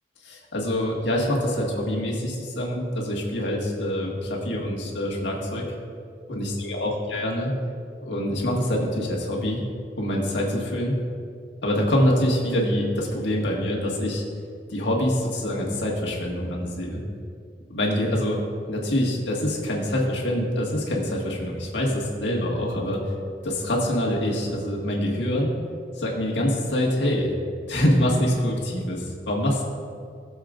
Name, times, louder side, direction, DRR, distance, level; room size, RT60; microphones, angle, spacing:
voice 1, 0.2-5.6 6.3-7.5 8.0-9.6 10.0-11.0 11.6-14.2 14.7-17.0 17.7-18.4 18.7-23.0 23.4-25.5 25.9-27.4 27.7-29.6, left 1 dB, 80° left, -3 dB, 1.8 m, -25 dB
17.5 x 7.2 x 2.5 m, 2.3 s
head